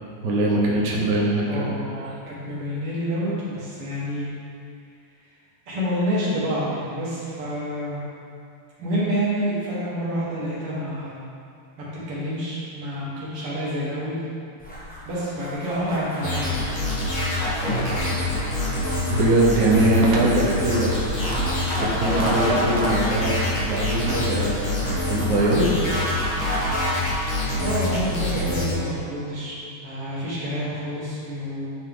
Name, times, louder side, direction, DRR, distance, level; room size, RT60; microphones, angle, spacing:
voice 1, 0.2-2.2 19.1-20.9 21.8-25.9 26.2-26.6, right 1 dB, 50° right, -3 dB, 1.2 m, -22 dB
voice 2, 1.5-4.3 5.7-8.0 8.8-11.2 11.8-14.2 15.1-16.6 27.6-29.5 29.8-31.7, equal, 90° right, -7 dB, 2.7 m, -28 dB
sound 1, 14.6-27.8, equal, 5° left, 0.8 m, -35 dB
sound 2, 16.2-28.7, left 1 dB, 40° left, 1.7 m, -25 dB
8.8 x 5.2 x 3.8 m, 2.4 s
omnidirectional pair, 2.4 m